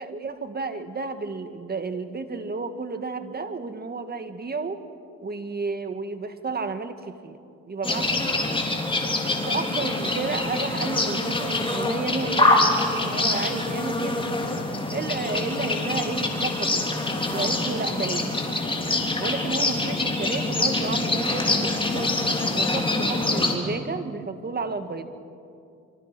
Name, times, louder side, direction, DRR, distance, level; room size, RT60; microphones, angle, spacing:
voice 1, 0.0-4.8 5.2-7.4 7.7-8.2 8.5-8.6 9.5-12.7 13.0-14.3 14.9-16.8 17.3-18.4 19.2-22.1 22.5-25.1, right 4 dB, 30° right, 9 dB, 1.8 m, -32 dB
sound 1, 7.8-23.6, left 2 dB, 15° left, 3.5 m, -25 dB
26.5 x 24.5 x 6.1 m, 2.4 s
cardioid pair, 90°, 30 cm